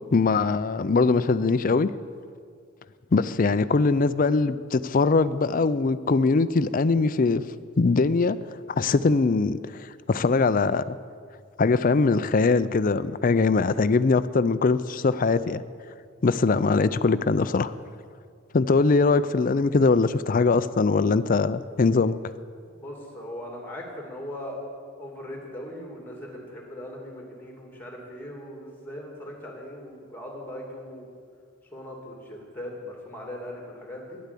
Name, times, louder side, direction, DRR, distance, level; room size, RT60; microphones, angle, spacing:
voice 1, 0.1-1.9 3.1-7.4 7.8-8.4 8.8-9.6 10.1-11.0 11.6-15.6 16.2-17.7 18.5-22.2, left 4 dB, 40° left, 13 dB, 0.4 m, -21 dB
voice 2, 22.7-24.6 25.0-31.1 31.7-34.2, left 1 dB, 10° left, 0 dB, 2.6 m, -39 dB
11.5 x 10.5 x 8.3 m, 2.2 s
head